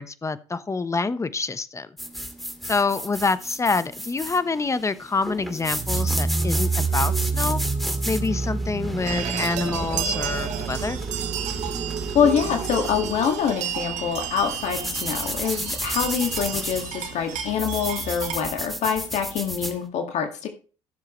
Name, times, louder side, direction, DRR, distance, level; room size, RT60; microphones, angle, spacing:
voice 1, 0.0-1.9 2.7-7.6 8.0-11.0, left 4 dB, 25° left, 14 dB, 1.1 m, -26 dB
sound 1, 2.0-19.8, equal, ahead, 2.4 m, -34 dB
sound 2, 5.7-13.4, right 4 dB, 35° right, 4.3 m, -28 dB
sound 3, 9.1-18.3, right 9 dB, 70° right, 1.9 m, -33 dB
voice 2, 12.1-20.5, left 7 dB, 65° left, 5 dB, 2.0 m, -25 dB
14.0 x 7.4 x 3.2 m, 0.37 s
supercardioid pair, 70°, 13 cm